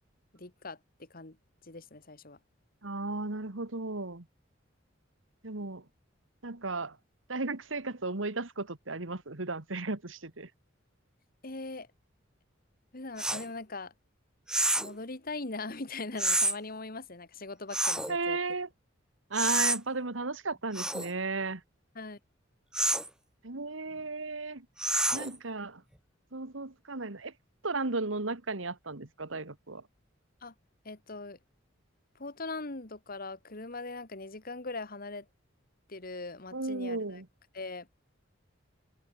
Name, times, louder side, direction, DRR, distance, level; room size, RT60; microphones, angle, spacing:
voice 1, 0.3-1.4 1.6-2.4 11.4-11.9 12.9-13.9 14.8-18.4 22.0-22.2 30.4-30.5 30.8-31.4 32.2-35.3 35.9-37.2 37.5-37.9, left 3 dB, 50° left, 2.1 m, -41 dB
voice 2, 2.8-4.2 5.4-5.8 6.4-7.0 7.3-10.5 18.1-18.7 19.3-21.6 23.4-24.7 25.1-25.8 26.3-27.3 27.6-29.8 36.5-37.3, right 3 dB, 85° right, 2.0 m, -34 dB
sound 1, 13.2-13.4 14.5-15.0 16.2-16.6 17.7-18.1 19.3-19.8 20.7-21.1 22.7-23.1 24.8-25.4, right 1 dB, 5° right, 0.7 m, -28 dB
head